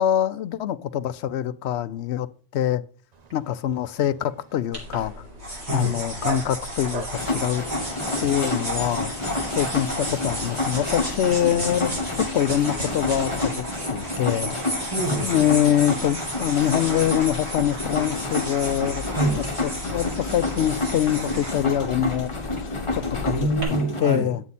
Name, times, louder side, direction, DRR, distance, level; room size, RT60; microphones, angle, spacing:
voice 1, 0.0-2.3 2.5-2.8 3.3-5.1 5.7-7.6 8.2-9.1 9.5-13.6 13.9-14.6 15.2-19.0 19.6-22.3 22.6-22.7 22.9-23.3 23.7-24.4, left 11 dB, 85° left, 0.9 m, -24 dB
Dog, 3.1-8.4, right 4 dB, 40° right, 0.9 m, -41 dB
sound 1, 4.7-23.6, equal, 90° right, 3.9 m, -33 dB
sound 2, 7.1-24.0, left 2 dB, 30° left, 1.2 m, -30 dB
voice 2, 14.6-15.5 19.0-19.4 23.2-24.3, right 1 dB, 20° right, 2.9 m, -26 dB
9.6 x 8.1 x 4.1 m
omnidirectional pair, 1.1 m